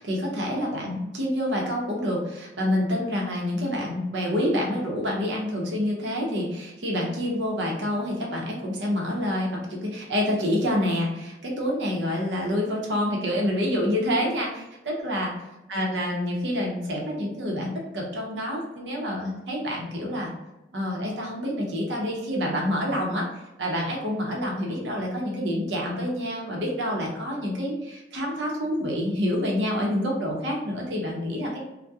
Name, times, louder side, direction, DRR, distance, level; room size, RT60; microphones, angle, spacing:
voice 1, 0.0-15.3 15.7-20.3 20.7-23.3 23.6-31.6, equal, 80° right, -1 dB, 0.7 m, -27 dB
2.3 x 2.1 x 2.7 m, 0.97 s
head